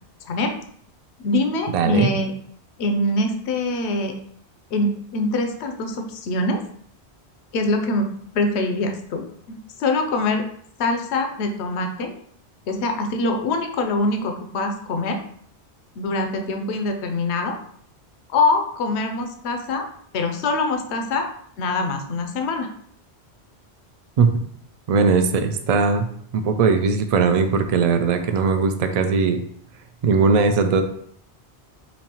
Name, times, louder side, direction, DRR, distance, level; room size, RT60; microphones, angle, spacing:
voice 1, 1.2-2.3 2.8-4.1 4.7-6.6 7.5-8.1 8.3-10.4 10.8-12.1 12.7-15.2 16.0-17.6 18.3-19.9 20.1-21.3 21.6-22.7, left 2 dB, 80° left, 5 dB, 0.9 m, -24 dB
voice 2, 1.7-2.1 24.2-24.3 24.9-26.1 26.3-29.4 30.0-30.8, right 5 dB, 55° right, 7 dB, 0.4 m, -19 dB
5.2 x 2.8 x 2.8 m, 0.63 s
omnidirectional pair, 1.1 m